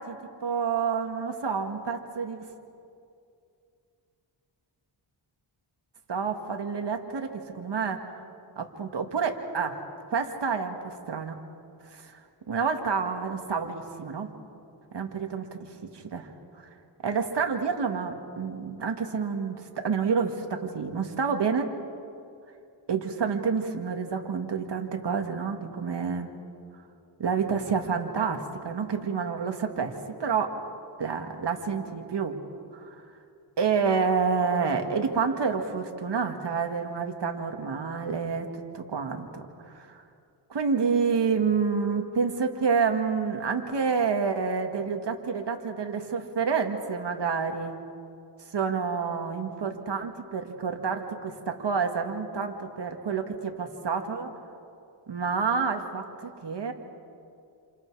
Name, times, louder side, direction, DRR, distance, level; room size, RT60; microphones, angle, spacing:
voice 1, 0.4-2.5 6.1-8.0 8.6-9.8 10.1-11.4 11.9-12.2 12.5-14.3 14.9-16.3 16.5-16.7 17.0-21.7 22.9-26.3 27.2-29.9 30.2-30.6 31.0-32.4 32.7-33.0 33.6-40.0 40.5-47.8 48.5-54.3 55.1-56.7, right 5 dB, 60° right, 4 dB, 2.1 m, -28 dB
28.0 x 27.5 x 4.9 m, 2.5 s
cardioid pair, 80°, 47 cm